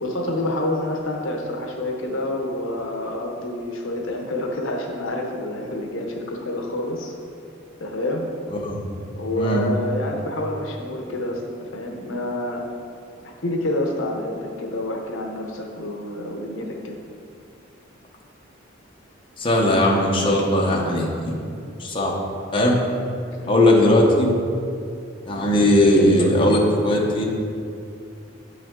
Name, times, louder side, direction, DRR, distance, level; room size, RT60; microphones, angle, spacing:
voice 1, 0.0-7.1 7.8-8.3 9.1-12.6 13.2-17.0 23.4-23.6, left 1 dB, 70° left, 1 dB, 0.8 m, -28 dB
voice 2, 19.4-21.3 21.8-22.1 22.5-22.8 23.5-24.3 25.3-27.2, left 1 dB, 25° left, -2 dB, 0.9 m, -18 dB
8.4 x 5.6 x 3.7 m, 2.5 s
head